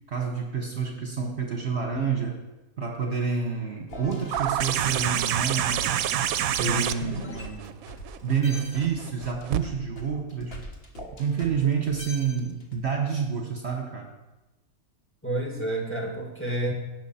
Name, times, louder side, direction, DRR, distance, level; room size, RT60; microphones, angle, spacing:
voice 1, 0.1-2.4 2.8-6.0 6.6-7.8 8.2-10.6 11.2-14.1, right 6 dB, 50° right, 3 dB, 1.3 m, -28 dB
sound 1, 3.9-8.1 8.4-12.8, left 1 dB, 45° left, 1.6 m, -42 dB
sound 2, 4.3-9.6 11.0-11.1, right 10 dB, 75° right, 1.0 m, -28 dB
voice 2, 6.5-6.9 15.2-16.7, right 1 dB, 10° left, 0 dB, 1.8 m, -30 dB
17.0 x 6.4 x 4.3 m, 1.0 s
omnidirectional pair, 1.5 m